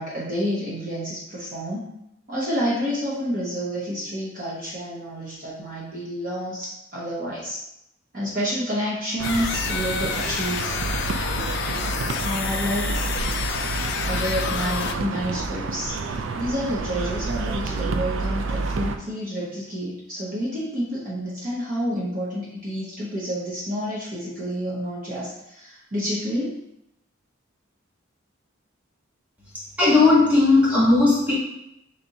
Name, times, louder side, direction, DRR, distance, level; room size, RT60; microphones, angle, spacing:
voice 1, 0.0-1.9 2.3-7.6 8.1-10.8 12.2-13.0 14.1-26.6, equal, 45° right, -7 dB, 0.9 m, -29 dB
sound 1, 9.2-15.0, left 7 dB, 55° left, 0.3 m, -29 dB
sound 2, 9.2-19.0, right 3 dB, 70° right, 0.3 m, -29 dB
voice 2, 29.8-31.3, left 3 dB, 5° right, -8 dB, 1.2 m, -16 dB
3.4 x 2.7 x 4.1 m, 0.81 s
head